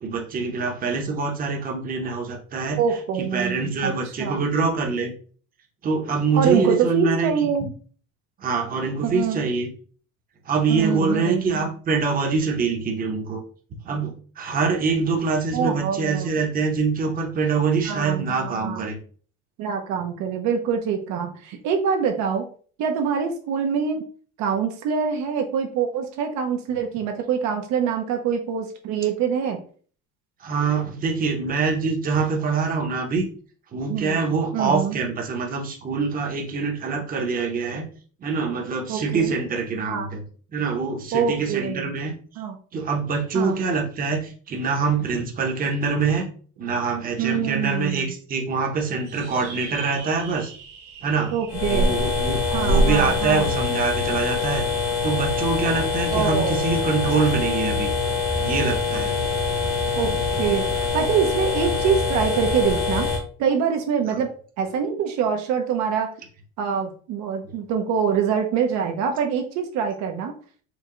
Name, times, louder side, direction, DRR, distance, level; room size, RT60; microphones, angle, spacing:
voice 1, 0.0-2.8 3.2-5.1 5.8-7.5 8.4-9.7 10.4-13.4 13.9-19.0 30.4-33.3 33.7-37.9 38.2-40.2 40.5-42.1 42.7-46.3 46.6-50.5 51.0-51.4 51.7-54.7 55.0-57.9 58.4-59.2 64.1-64.2 67.4-67.5, right 4 dB, 30° right, 2 dB, 0.8 m, -24 dB
voice 2, 2.8-3.9 4.2-4.5 6.4-7.7 9.0-9.4 10.7-11.7 15.5-16.3 17.9-18.8 19.6-22.5 22.8-24.0 24.4-29.6 33.9-34.2 34.5-35.0 38.9-39.3 39.9-40.1 41.1-41.9 42.4-42.6 43.3-43.6 47.2-48.1 51.3-52.0 52.5-53.5 56.1-56.6 60.0-63.1 63.4-64.3 64.6-66.1 66.6-70.3, right 7 dB, 65° right, 4 dB, 0.7 m, -25 dB
sound 1, 49.0-53.8, right 5 dB, 85° right, 1.5 m, -43 dB
sound 2, 51.5-63.2, left 3 dB, 50° left, 1.3 m, -24 dB
4.7 x 2.2 x 3.7 m, 0.44 s
cardioid pair, 145°, 31 cm